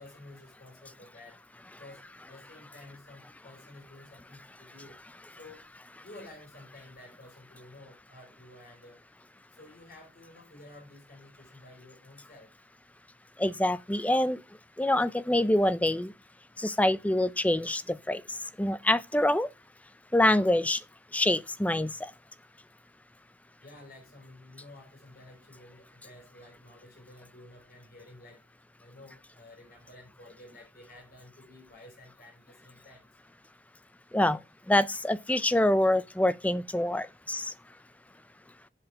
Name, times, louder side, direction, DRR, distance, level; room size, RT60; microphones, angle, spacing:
voice 1, 0.0-1.4 1.8-5.7 6.0-9.0 9.5-12.5 23.6-28.4 28.8-33.1, left 2 dB, 50° left, 4.6 m, -52 dB
voice 2, 13.4-14.4 14.8-16.1 16.6-17.8 18.1-18.2 18.6-19.5 20.1-20.8 21.1-21.9 34.1-34.4 34.7-37.4, left 1 dB, 10° left, 0.5 m, -25 dB
7.7 x 7.3 x 4.6 m
head